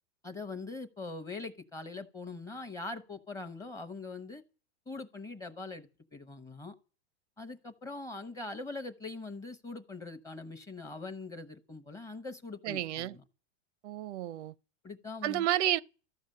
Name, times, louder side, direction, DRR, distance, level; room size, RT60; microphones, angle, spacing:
voice 1, 0.2-4.4 4.9-6.8 7.4-13.2 14.8-15.5, left 3 dB, 10° left, 0.7 m, -42 dB
voice 2, 12.6-13.1 13.8-14.5 15.2-15.8, right 13 dB, 90° right, 0.6 m, -31 dB
14.5 x 11.0 x 6.5 m
supercardioid pair, 160°, 34 cm